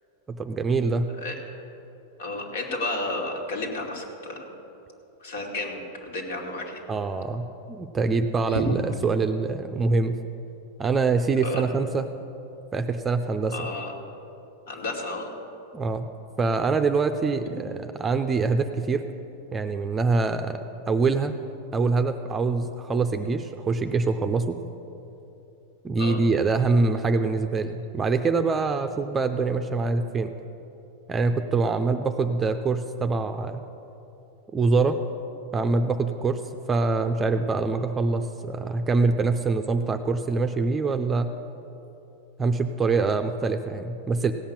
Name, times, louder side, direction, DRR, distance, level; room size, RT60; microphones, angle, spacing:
voice 1, 0.3-1.1 6.9-10.2 10.8-12.0 12.7-13.7 15.7-16.1 16.4-19.0 19.5-20.6 20.9-21.4 21.7-24.6 25.8-30.3 31.1-33.6 34.5-35.0 35.5-36.4 36.7-41.3 42.4-44.3, right 4 dB, 15° right, 7 dB, 0.5 m, -24 dB
voice 2, 2.2-4.5 5.2-6.8 8.5-8.8 11.4-11.6 13.5-13.9 14.7-15.3 26.0-26.2, left 2 dB, 80° left, 0 dB, 2.5 m, -32 dB
16.5 x 5.8 x 8.8 m, 3.0 s
supercardioid pair, 140°, 0 cm